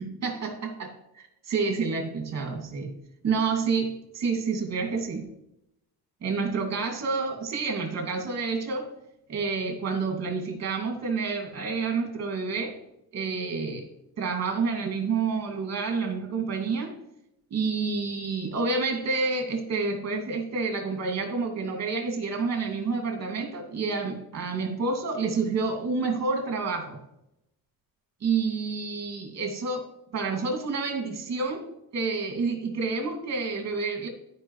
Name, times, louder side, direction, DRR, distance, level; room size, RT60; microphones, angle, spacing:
voice 1, 0.0-3.0 3.2-5.3 6.2-8.9 9.3-12.8 13.1-13.9 14.2-17.0 17.5-27.0 28.2-29.9 30.1-34.1, right 4 dB, 40° right, 2 dB, 2.4 m, -29 dB
14.0 x 5.2 x 3.3 m, 0.84 s
cardioid pair, 150°, 39 cm